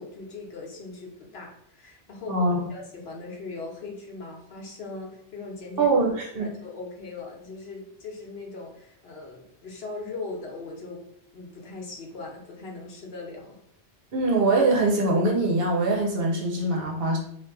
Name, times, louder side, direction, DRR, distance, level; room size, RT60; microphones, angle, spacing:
voice 1, 0.0-2.4 2.7-5.9 6.3-11.0 11.3-13.6, left 3 dB, 65° left, 0 dB, 1.0 m, -39 dB
voice 2, 2.3-2.7 5.8-6.5 14.1-17.2, right 2 dB, 60° right, -1 dB, 0.9 m, -23 dB
2.8 x 2.4 x 3.5 m, 0.69 s
omnidirectional pair, 1.1 m